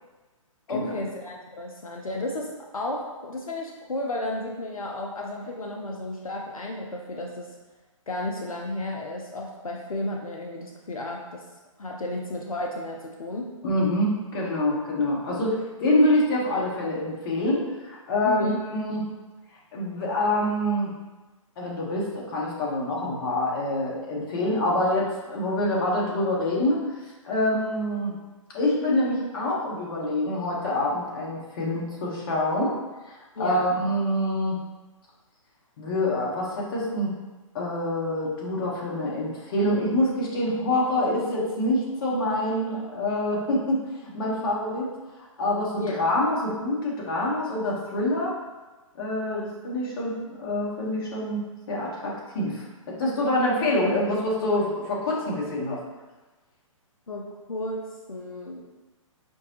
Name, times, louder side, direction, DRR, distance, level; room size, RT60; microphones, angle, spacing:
voice 1, 0.7-7.5 8.1-11.4 11.8-13.5 18.2-18.6 33.4-33.8 45.8-46.0 57.1-58.6, left 1 dB, 90° left, 0 dB, 0.5 m, -33 dB
voice 2, 13.6-19.0 19.7-20.9 21.6-26.8 27.2-28.1 28.5-32.8 33.0-34.6 35.8-37.1 37.5-44.9 45.4-48.3 49.0-55.8, left 1 dB, 40° left, -4 dB, 1.1 m, -26 dB
4.5 x 2.7 x 2.8 m, 1.2 s
figure-of-eight pair, 130°, 17 cm